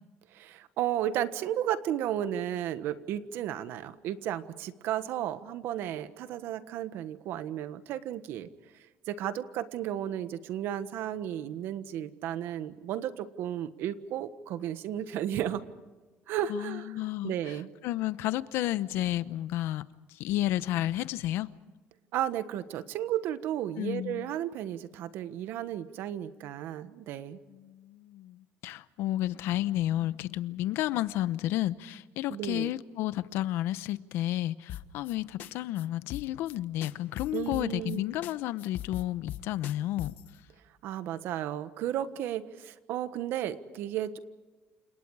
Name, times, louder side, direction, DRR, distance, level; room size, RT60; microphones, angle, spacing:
voice 1, 0.3-8.5 9.1-15.6 16.3-17.7 22.1-27.4 32.3-32.7 37.3-38.0 40.8-44.2, right 11 dB, 60° right, 1.4 m, -33 dB
voice 2, 16.5-17.6 17.8-19.8 20.1-21.5 23.8-24.3 27.5-40.1, left 14 dB, 70° left, 0.9 m, -31 dB
sound 1, 34.7-35.1 35.4-35.5 35.8-35.9 36.1-36.6 36.8-38.0 38.2-38.3 38.6-40.3, left 12 dB, 50° left, 1.4 m, -40 dB
29.5 x 27.5 x 4.9 m
cardioid pair, 170°, 4 cm